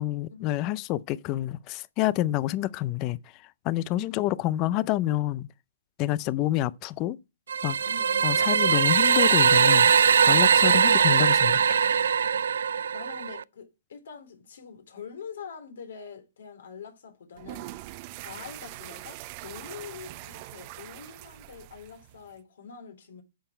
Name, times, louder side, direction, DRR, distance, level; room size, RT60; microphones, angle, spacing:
voice 1, 0.0-5.5 6.0-7.2 7.6-7.8 8.2-9.9 10.3-11.6, left 15 dB, 25° left, 0.5 m, -28 dB
voice 2, 3.9-4.4 7.8-8.4 10.7-11.2 12.9-17.7 18.2-23.2, left 6 dB, 70° left, 3.7 m, -44 dB
sound 1, 7.5-13.4, right 7 dB, 80° right, 0.4 m, -21 dB
sound 2, 17.3-22.4, right 17 dB, 30° right, 0.7 m, -43 dB
10.0 x 7.0 x 4.4 m
hypercardioid pair, 160°, 0 cm